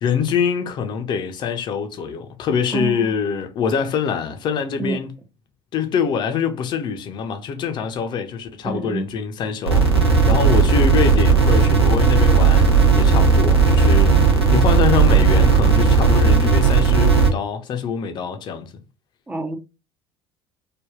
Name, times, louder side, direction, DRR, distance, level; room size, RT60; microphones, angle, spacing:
voice 1, 0.0-5.1 5.7-18.7, left 7 dB, 35° left, 0.6 m, -24 dB
voice 2, 2.7-3.1 4.8-5.0 8.6-9.0 14.1-14.2 19.3-19.6, right 3 dB, 10° right, 0.5 m, -27 dB
sound 1, 9.7-17.3, right 5 dB, 85° right, 0.6 m, -15 dB
3.4 x 2.2 x 2.3 m
figure-of-eight pair, 65°, 13 cm